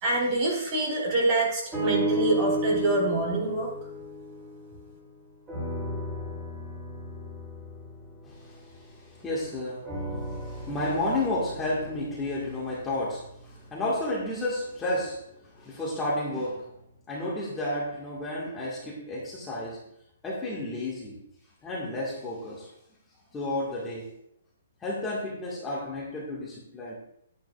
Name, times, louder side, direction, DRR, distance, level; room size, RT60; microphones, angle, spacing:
voice 1, 0.0-3.7, right 2 dB, 30° right, -2 dB, 3.1 m, -25 dB
sound 1, 1.7-5.1 5.5-9.2 9.8-14.1 14.7-14.8, equal, 15° right, 3.0 m, -35 dB
voice 2, 8.3-9.9 10.4-16.7 17.1-19.8 20.2-21.2 21.6-22.7 23.3-24.1 24.8-27.0, left 1 dB, 10° left, -5 dB, 1.8 m, -32 dB
10.0 x 9.2 x 2.4 m, 0.71 s
hypercardioid pair, 160°, 0 cm